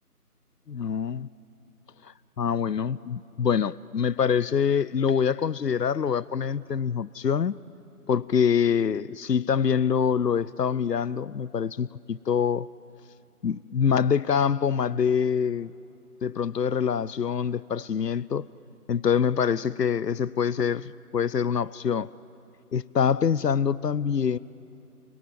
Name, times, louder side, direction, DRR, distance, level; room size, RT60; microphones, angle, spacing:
voice 1, 0.7-1.3 2.0-7.6 8.1-12.7 13.4-15.7 16.2-18.5 18.9-22.1 22.7-24.4, left 7 dB, 90° left, 0.6 m, -25 dB
30.0 x 21.0 x 9.4 m
figure-of-eight pair, 165°, 47 cm